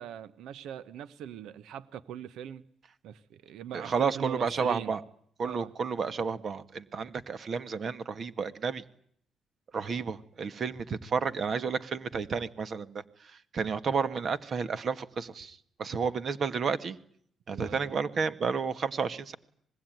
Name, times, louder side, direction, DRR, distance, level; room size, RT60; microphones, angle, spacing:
voice 1, 0.0-2.6 3.0-4.9 5.4-5.7 17.5-18.2, right 9 dB, 85° right, 15 dB, 1.2 m, -41 dB
voice 2, 3.7-5.0 5.4-8.8 9.7-12.9 13.5-17.0 17.5-19.3, right 5 dB, 50° right, 12 dB, 2.0 m, -31 dB
25.5 x 21.0 x 9.4 m, 0.64 s
cardioid pair, 90°, 0 cm